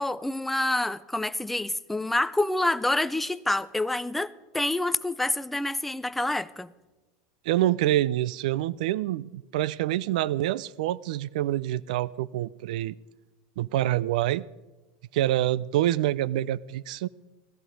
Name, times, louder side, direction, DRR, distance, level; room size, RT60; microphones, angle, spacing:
voice 1, 0.0-6.7, left 2 dB, 5° left, 0.4 m, -27 dB
voice 2, 7.4-12.9 13.6-14.4 15.1-17.1, right 14 dB, 70° right, 0.4 m, -26 dB
15.5 x 14.0 x 5.1 m
supercardioid pair, 150°, 4 cm